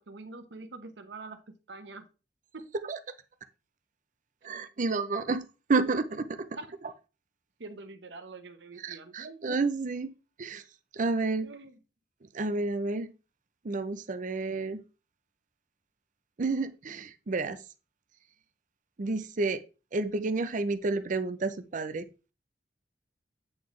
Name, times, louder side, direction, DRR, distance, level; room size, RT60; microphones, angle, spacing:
voice 1, 0.0-2.1 2.5-2.7 6.6-6.7 7.6-9.4 11.4-11.8, right 3 dB, 85° right, 9 dB, 0.9 m, -45 dB
voice 2, 4.4-6.5 8.8-10.1 10.4-10.6 10.9-11.5 12.3-13.1 13.6-14.8 16.4-17.6 19.0-19.6 19.9-22.1, right 3 dB, 45° right, 11 dB, 0.5 m, -30 dB
8.5 x 4.1 x 3.1 m, 0.33 s
head